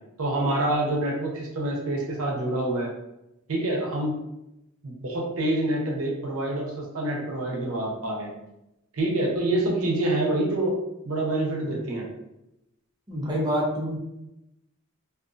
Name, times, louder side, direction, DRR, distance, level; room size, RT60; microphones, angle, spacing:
voice 1, 0.2-2.9 3.5-4.2 4.8-8.3 8.9-10.8 11.0-12.1, right 1 dB, 85° right, -1 dB, 0.7 m, -26 dB
voice 2, 13.1-14.0, equal, 20° right, -4 dB, 0.6 m, -26 dB
2.5 x 2.5 x 2.4 m, 0.89 s
head